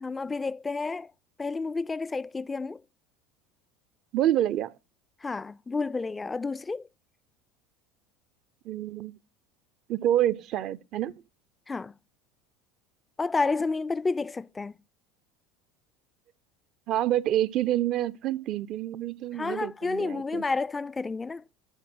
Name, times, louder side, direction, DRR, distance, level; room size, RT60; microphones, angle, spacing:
voice 1, 0.0-1.1 1.4-2.8 5.2-6.9 11.7-11.9 13.2-14.8 19.3-21.4, left 3 dB, 20° left, 0.3 m, -30 dB
voice 2, 4.1-4.7 8.6-9.2 9.9-11.1 16.9-20.4, right 12 dB, 55° right, 0.4 m, -27 dB
8.0 x 4.5 x 6.0 m
hypercardioid pair, 75°, 0 cm